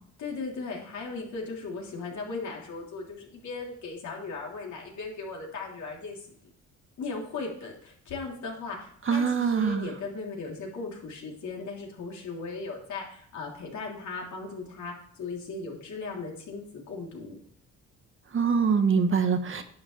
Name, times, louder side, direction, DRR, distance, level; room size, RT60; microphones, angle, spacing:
voice 1, 0.2-6.3 7.0-17.4, left 4 dB, 70° left, -1 dB, 3.2 m, -37 dB
voice 2, 9.1-9.9 18.3-19.6, right 6 dB, 45° right, 8 dB, 1.2 m, -24 dB
10.5 x 8.1 x 3.3 m, 0.62 s
cardioid pair, 90°, 30 cm